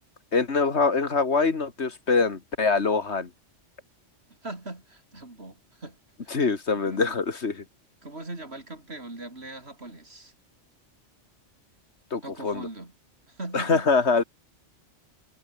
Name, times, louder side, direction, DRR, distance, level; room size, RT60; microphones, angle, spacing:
voice 1, 0.3-3.3 6.3-7.6 12.1-12.7 13.5-14.2, left 4 dB, 65° left, 2.1 m, -24 dB
voice 2, 4.4-6.0 6.2-6.3 6.8-7.2 8.0-10.3 12.2-12.9 13.3-13.9, right 2 dB, 60° right, 4.7 m, -40 dB
omnidirectional pair, 1.2 m